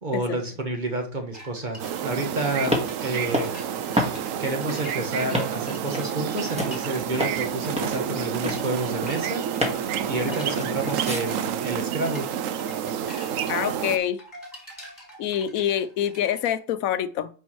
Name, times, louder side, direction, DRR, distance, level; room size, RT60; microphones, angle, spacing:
voice 1, 0.0-2.8 3.0-3.5 4.4-9.5 10.1-12.3, right 2 dB, 35° right, 1.2 m, -29 dB
sound 1, 1.3-16.6, equal, 15° left, 3.4 m, -45 dB
sound 2, 1.8-14.0, right 9 dB, 75° right, 0.9 m, -29 dB
sound 3, 2.3-11.2, left 1 dB, 5° right, 1.6 m, -31 dB
voice 2, 13.5-14.2 15.2-17.3, left 10 dB, 80° left, 1.0 m, -26 dB
9.2 x 4.6 x 3.1 m
omnidirectional pair, 1.4 m